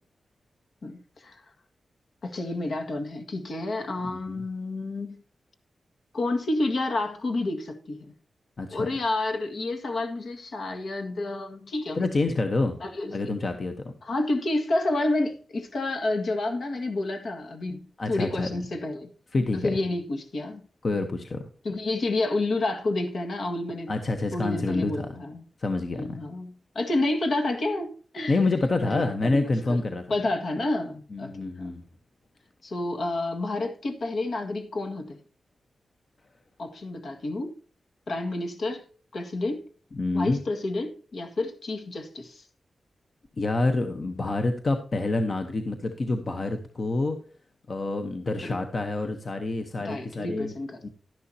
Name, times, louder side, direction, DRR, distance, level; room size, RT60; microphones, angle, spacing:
voice 1, 0.8-1.4 2.2-5.2 6.1-8.1 8.7-12.0 12.8-13.4 14.0-19.1 19.5-20.6 21.6-23.9 24.3-25.4 25.9-28.4 28.9-29.8 30.1-31.8 32.6-35.2 36.6-37.5 38.1-38.8 39.1-39.6 40.1-42.4 48.4-48.6 49.8-50.9, left 2 dB, 65° left, 1.8 m, -29 dB
voice 2, 4.0-4.4 8.6-8.9 12.0-12.8 13.1-13.9 18.0-18.6 19.3-19.8 20.8-21.4 23.9-25.1 25.6-26.2 28.3-30.0 31.1-31.8 39.9-40.4 43.4-47.2 47.7-50.5 50.8-50.9, left 2 dB, 40° left, 1.0 m, -27 dB
11.5 x 11.0 x 2.8 m
wide cardioid pair, 135°, 0 cm